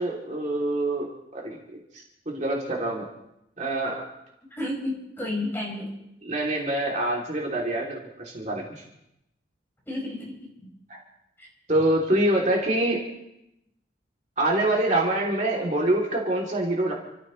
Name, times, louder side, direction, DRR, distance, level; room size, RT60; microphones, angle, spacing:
voice 1, 0.0-1.6 1.9-3.1 3.6-4.0 6.2-8.8 11.7-13.0 14.4-16.9, right 1 dB, 40° right, -2 dB, 2.9 m, -25 dB
voice 2, 4.5-5.9 9.9-10.7 11.4-11.5, left 1 dB, 15° left, -4 dB, 5.4 m, -32 dB
30.0 x 14.5 x 3.2 m, 0.83 s
head